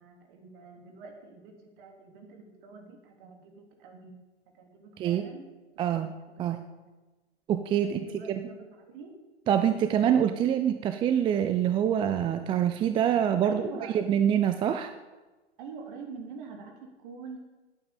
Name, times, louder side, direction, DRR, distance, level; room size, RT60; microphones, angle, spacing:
voice 1, 0.0-4.2 4.5-5.5 5.8-5.9 6.4-6.8 7.8-9.2 13.4-14.0 15.6-17.4, right 4 dB, 45° right, 3 dB, 3.5 m, -45 dB
voice 2, 5.8-6.1 6.4-6.6 7.5-8.4 9.5-13.6 13.9-14.9, right 9 dB, 15° right, 9 dB, 0.5 m, -25 dB
10.5 x 9.3 x 9.0 m, 1.2 s
hypercardioid pair, 115°, 34 cm